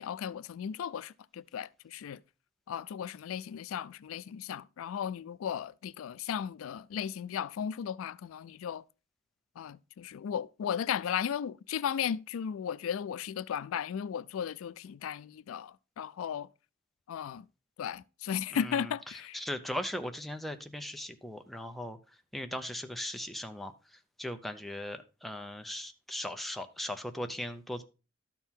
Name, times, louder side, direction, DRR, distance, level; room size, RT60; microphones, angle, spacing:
voice 1, 0.0-2.2 2.7-8.8 9.6-16.5 17.1-17.4 17.8-19.4, left 8 dB, 85° left, 0.3 m, -35 dB
voice 2, 18.5-18.9 19.3-22.0 22.3-23.7 24.2-27.8, left 1 dB, ahead, 0.6 m, -38 dB
12.5 x 4.5 x 3.6 m
head